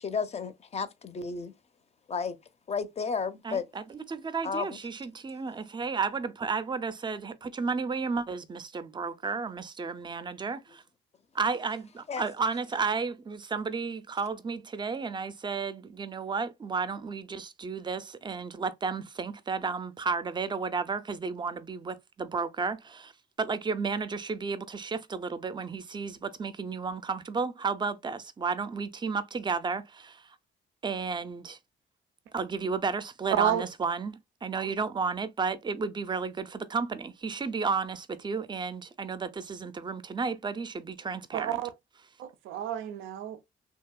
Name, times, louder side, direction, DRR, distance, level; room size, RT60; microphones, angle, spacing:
voice 1, 0.0-1.5 2.1-2.3 2.7-3.6 4.4-4.7 12.1-12.2, left 5 dB, 35° left, 0.5 m, -32 dB
voice 2, 3.4-10.8 11.3-23.1 23.4-30.2 30.8-31.6 32.3-41.6, right 5 dB, 25° right, 0.4 m, -33 dB
voice 3, 33.3-33.6 41.3-41.7 42.2-43.5, right 10 dB, 85° right, 0.5 m, -30 dB
2.8 x 2.6 x 2.2 m
cardioid pair, 90°, 20 cm